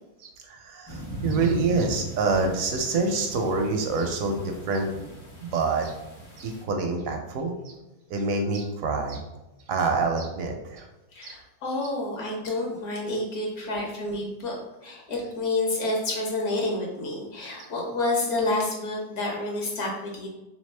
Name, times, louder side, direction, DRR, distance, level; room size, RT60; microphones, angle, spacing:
voice 1, 0.2-4.9 5.4-5.9 6.4-7.7 8.1-9.2 9.7-10.9 11.2-11.4, right 3 dB, 70° right, 4 dB, 0.8 m, -26 dB
sound 1, 0.9-6.6, right 1 dB, 35° left, 0.4 m, -38 dB
voice 2, 11.1-14.6 14.8-20.3, left 2 dB, 60° left, -2 dB, 1.3 m, -29 dB
3.5 x 3.4 x 3.2 m, 1.0 s
omnidirectional pair, 1.8 m